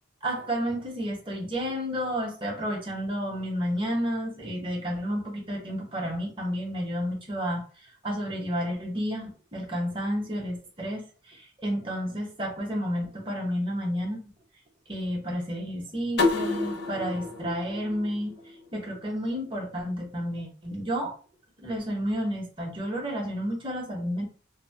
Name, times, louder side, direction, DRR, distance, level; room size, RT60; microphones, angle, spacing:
voice 1, 0.2-7.6 8.0-11.4 11.6-14.2 14.9-18.3 18.7-21.1 21.6-24.2, equal, 25° right, -1 dB, 0.9 m, -31 dB
sound 1, 16.2-19.0, left 3 dB, 60° left, 0.6 m, -29 dB
2.7 x 2.2 x 3.3 m, 0.36 s
head